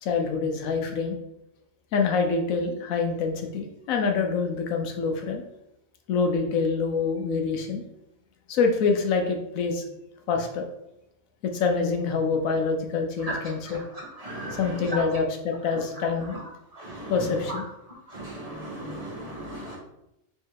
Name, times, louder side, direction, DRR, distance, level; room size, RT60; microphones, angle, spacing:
voice 1, 0.0-1.2 1.9-5.4 6.1-7.8 8.5-9.8 10.3-10.7 11.4-13.8 14.6-16.4 17.1-17.7, left 5 dB, 80° left, 4 dB, 1.1 m, -26 dB
voice 2, 14.2-14.6 14.9-15.0 16.7-17.1 18.1-19.8, right 1 dB, 30° right, -4 dB, 1.0 m, -36 dB
3.3 x 2.8 x 4.6 m, 0.84 s
omnidirectional pair, 1.4 m